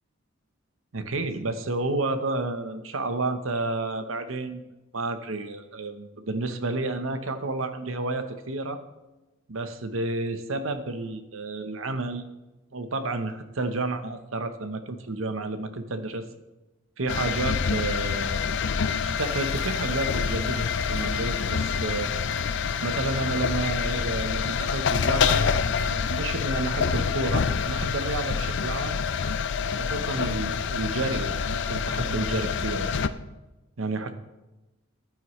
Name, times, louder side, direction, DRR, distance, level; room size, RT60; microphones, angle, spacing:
voice 1, 0.9-4.6 4.9-8.8 9.5-12.2 12.7-16.3 17.0-18.4 19.0-22.1 22.8-29.0 29.8-32.9 33.8-34.2, right 2 dB, 85° right, 9 dB, 0.9 m, -30 dB
sound 1, 17.1-33.1, left 6 dB, 60° left, 0.4 m, -27 dB
sound 2, 19.2-24.4, right 2 dB, 50° right, 1.7 m, -45 dB
14.5 x 9.1 x 3.2 m, 1.0 s
head